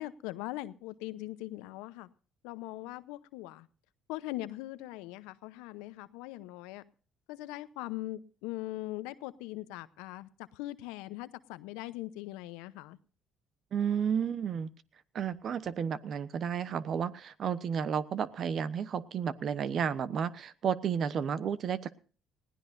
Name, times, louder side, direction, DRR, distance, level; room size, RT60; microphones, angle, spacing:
voice 1, 0.0-2.1 2.4-3.7 4.1-6.8 7.3-13.0, left 17 dB, 85° left, 15 dB, 0.8 m, -41 dB
voice 2, 13.7-14.7 15.1-22.0, right 7 dB, 55° right, 15 dB, 1.0 m, -32 dB
20.5 x 16.0 x 2.6 m, 0.40 s
supercardioid pair, 70°, 0 cm